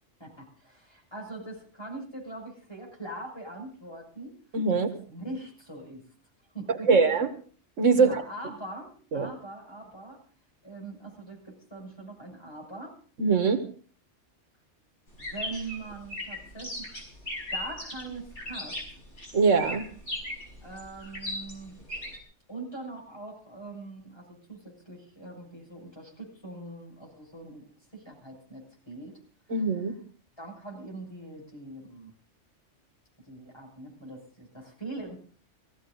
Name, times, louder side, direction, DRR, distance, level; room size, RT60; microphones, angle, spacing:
voice 1, 0.2-4.4 5.1-6.0 6.5-6.9 7.9-10.2 10.6-13.0 15.2-16.9 17.5-18.8 20.6-21.7 22.5-27.7 27.9-29.2 30.4-32.1 33.3-35.2, right 2 dB, 20° left, -1 dB, 7.0 m, -42 dB
voice 2, 4.5-4.9 6.8-7.3 7.8-8.2 9.1-9.3 13.2-13.6 19.3-19.8 29.5-29.9, right 4 dB, 90° right, 6 dB, 1.9 m, -22 dB
sound 1, 15.1-22.2, left 1 dB, 65° left, 6.1 m, -37 dB
18.5 x 15.5 x 4.0 m, 0.43 s
omnidirectional pair, 1.3 m